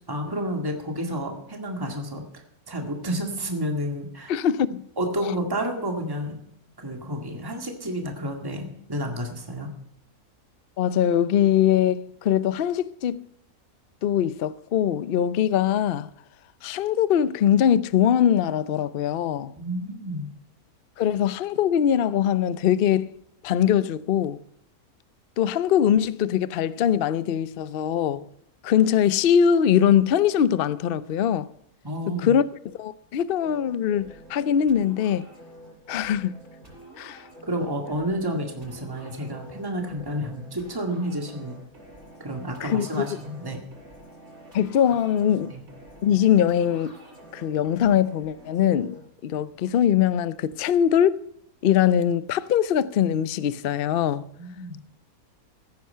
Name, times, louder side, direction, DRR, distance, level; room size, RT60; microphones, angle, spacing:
voice 1, 0.1-4.4 5.0-6.4 6.8-9.7 19.5-20.3 31.8-32.3 37.4-41.6 42.2-43.6 45.5-45.7 54.3-54.8, equal, 15° right, 2.0 m, -30 dB
voice 2, 4.3-4.8 10.8-13.3 14.0-16.1 16.6-19.5 21.0-23.1 23.4-24.4 25.4-28.3 28.6-31.5 32.2-35.3 35.9-36.3 37.0-37.2 42.6-43.0 44.5-45.5 46.0-46.9 47.3-49.0 49.2-51.2 51.6-54.2, left 9 dB, 55° left, 0.6 m, -22 dB
sound 1, 33.4-49.0, right 1 dB, 55° right, 6.0 m, -48 dB
16.0 x 9.5 x 5.6 m
omnidirectional pair, 1.6 m